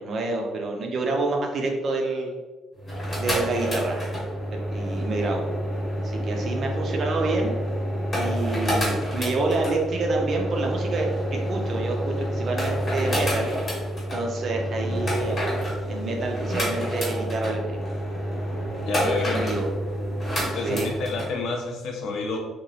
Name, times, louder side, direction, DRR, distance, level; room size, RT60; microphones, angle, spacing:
voice 1, 0.0-2.3 3.2-4.0 4.5-5.4 6.0-7.5 8.1-13.5 14.1-15.4 15.9-17.8 19.0-19.6 20.6-20.9, right 3 dB, 40° right, 1 dB, 0.4 m, -28 dB
sound 1, 2.8-21.3, equal, 25° left, 0.9 m, -28 dB
voice 2, 18.8-19.6 20.4-22.4, left 3 dB, 65° left, 2 dB, 0.4 m, -29 dB
2.9 x 2.3 x 2.6 m, 1.3 s
cardioid pair, 170°, 0 cm